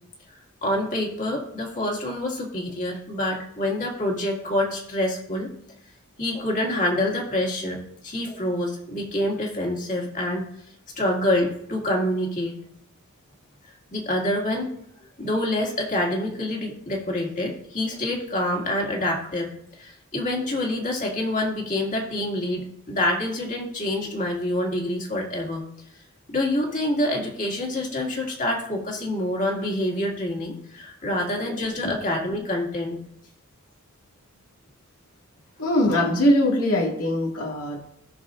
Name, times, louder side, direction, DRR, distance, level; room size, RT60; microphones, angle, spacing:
voice 1, 0.6-5.5 6.2-10.4 11.0-12.6 13.9-14.7 15.2-25.6 26.3-33.0, left 1 dB, 35° left, -1 dB, 2.2 m, -26 dB
voice 2, 35.6-37.8, left 1 dB, 85° left, -2 dB, 2.2 m, -22 dB
16.5 x 6.4 x 2.6 m, 0.71 s
head